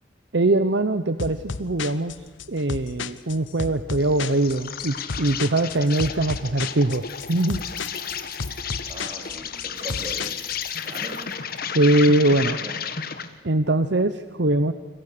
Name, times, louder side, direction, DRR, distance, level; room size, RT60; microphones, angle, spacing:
voice 1, 0.3-2.1 2.5-7.6 11.7-12.6 13.4-14.7, right 2 dB, 60° right, 11 dB, 0.9 m, -22 dB
sound 1, 1.2-10.7, left 4 dB, 75° left, 0.9 m, -34 dB
Insect, 4.0-13.4, left 7 dB, 50° left, 1.5 m, -32 dB
Keys jangling, 5.3-5.4 5.7-6.5 6.7-9.1 9.7-12.0, left 6 dB, 20° left, 3.2 m, -47 dB
voice 2, 8.9-10.4 10.8-11.2 12.6-12.7, right 1 dB, 30° right, 1 dB, 4.4 m, -39 dB
29.5 x 25.0 x 6.7 m, 1.3 s
head